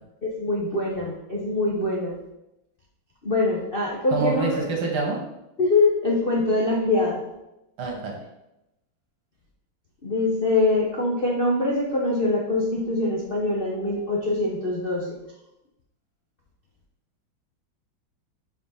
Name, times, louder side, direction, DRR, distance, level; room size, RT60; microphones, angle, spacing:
voice 1, 0.2-2.1 3.2-4.5 5.6-7.2 10.0-15.2, left 2 dB, 45° left, -3 dB, 0.7 m, -23 dB
voice 2, 4.1-5.2 7.8-8.2, right 4 dB, 75° right, -1 dB, 2.0 m, -26 dB
5.2 x 4.7 x 5.6 m, 0.91 s
omnidirectional pair, 2.2 m